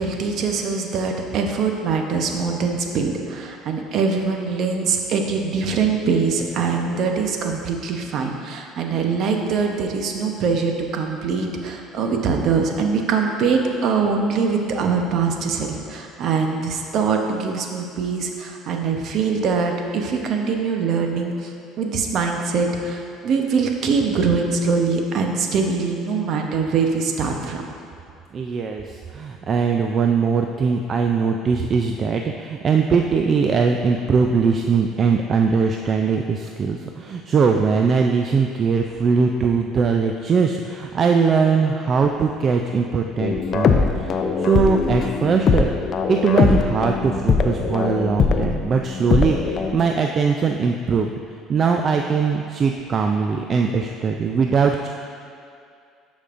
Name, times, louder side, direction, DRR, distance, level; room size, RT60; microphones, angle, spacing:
voice 1, 0.0-27.6, right 5 dB, 55° right, 3 dB, 0.8 m, -23 dB
voice 2, 28.3-45.7 46.1-51.1 51.5-54.9, right 5 dB, 40° right, 3 dB, 0.3 m, -21 dB
sound 1, 43.2-49.9, left 5 dB, 45° left, 0.4 m, -21 dB
11.5 x 5.2 x 2.5 m, 2.4 s
supercardioid pair, 105°, 0 cm